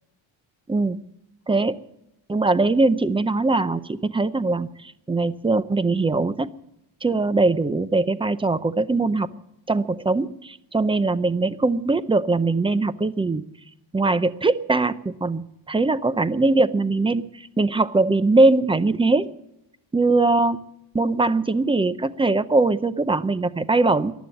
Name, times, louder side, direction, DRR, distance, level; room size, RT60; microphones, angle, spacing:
voice 1, 2.3-6.5 7.0-9.3 9.7-13.4 13.9-19.3 19.9-20.6 20.9-24.1, right 3 dB, 10° right, 15 dB, 0.5 m, -21 dB
15.0 x 11.5 x 8.2 m, 0.85 s
cardioid pair, 140°, 48 cm